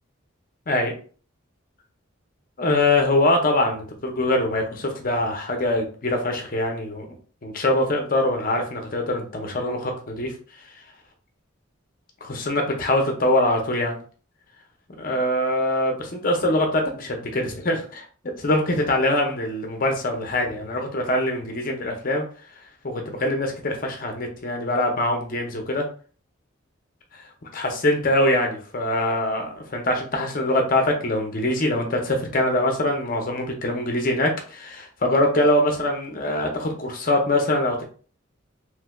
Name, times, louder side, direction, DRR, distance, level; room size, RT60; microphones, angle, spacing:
voice 1, 2.6-7.1 7.4-10.3 12.2-14.0 15.0-18.0 18.4-22.3 22.8-25.9 27.5-37.9, left 1 dB, 45° left, 3 dB, 0.8 m, -23 dB
3.2 x 3.2 x 2.3 m, 0.40 s
head